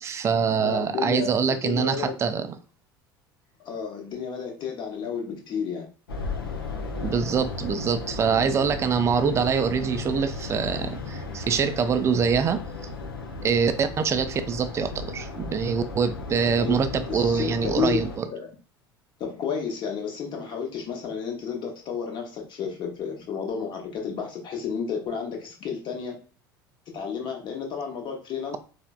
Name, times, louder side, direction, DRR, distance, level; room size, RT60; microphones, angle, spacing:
voice 1, 0.0-2.6 7.0-12.6 13.4-18.3, right 6 dB, 25° right, 0.4 m, -24 dB
voice 2, 0.6-1.3 1.6-2.1 3.6-5.9 16.6-18.0 18.3-18.5 19.2-26.2 26.9-28.6, left 6 dB, 40° left, 0.9 m, -31 dB
sound 1, 6.1-18.2, left 3 dB, 75° left, 0.5 m, -35 dB
4.2 x 2.0 x 2.3 m
figure-of-eight pair, 70°, 12 cm